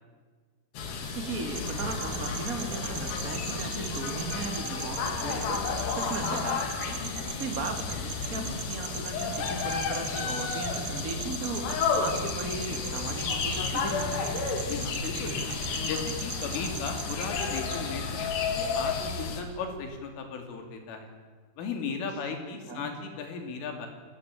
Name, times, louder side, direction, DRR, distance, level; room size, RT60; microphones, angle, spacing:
sound 1, 0.7-19.4, left 5 dB, 60° left, 4.5 m, -32 dB
voice 1, 1.1-5.6 5.9-7.0 7.4-14.3 22.7-22.9, right 3 dB, 25° right, 4 dB, 2.6 m, -37 dB
sound 2, 1.5-17.9, right 6 dB, 50° right, 1.8 m, -40 dB
voice 2, 14.5-15.5 15.9-21.1 21.6-23.9, left 5 dB, 90° left, 5 dB, 5.6 m, -36 dB
29.0 x 17.5 x 8.6 m, 1.5 s
omnidirectional pair, 5.5 m